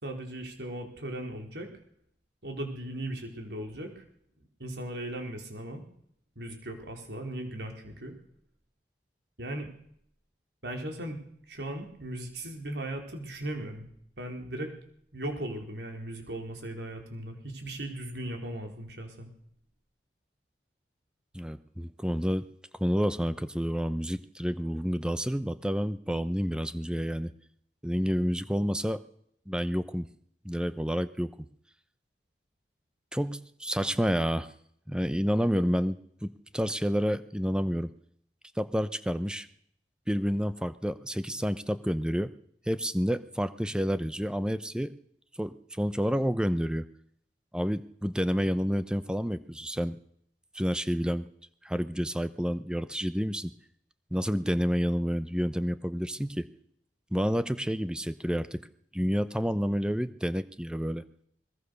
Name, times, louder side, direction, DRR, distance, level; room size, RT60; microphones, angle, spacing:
voice 1, 0.0-1.7 2.4-4.0 4.6-5.8 6.4-8.1 9.4-9.7 10.6-11.2 11.5-13.9 14.2-14.7 15.1-19.3, right 1 dB, 75° right, 3 dB, 4.5 m, -37 dB
voice 2, 21.3-22.5 22.8-27.3 27.8-29.0 29.5-30.1 30.4-31.3 33.1-34.5 34.9-37.9 38.6-39.5 40.1-42.3 42.7-44.9 45.4-46.9 47.5-50.0 50.5-51.3 51.6-53.5 54.1-56.5 57.1-58.7 58.9-61.0, equal, 5° right, 13 dB, 0.7 m, -29 dB
21.5 x 21.0 x 6.6 m, 0.69 s
head